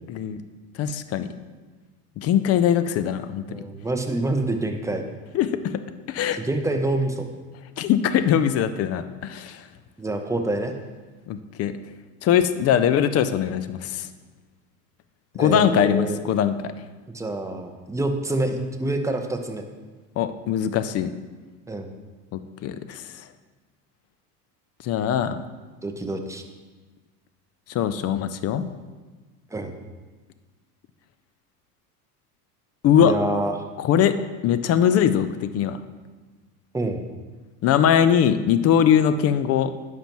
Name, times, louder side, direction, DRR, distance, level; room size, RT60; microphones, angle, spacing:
voice 1, 0.8-1.3 2.2-3.6 5.3-5.5 6.1-6.4 7.8-9.6 11.3-11.7 12.2-14.1 15.3-16.7 20.2-21.1 22.3-23.1 24.8-25.4 27.7-28.7 32.8-33.1 33.8-34.1 34.4-35.8 37.6-39.7, left 9 dB, 35° left, 11 dB, 0.4 m, -21 dB
voice 2, 3.5-5.0 6.4-7.2 10.0-10.7 15.4-16.2 17.1-19.6 21.7-21.9 25.8-26.4 29.5-29.7 33.0-33.6 36.7-37.0, right 2 dB, 5° right, 5 dB, 0.7 m, -26 dB
10.0 x 6.0 x 3.0 m, 1.3 s
hypercardioid pair, 85°, 47 cm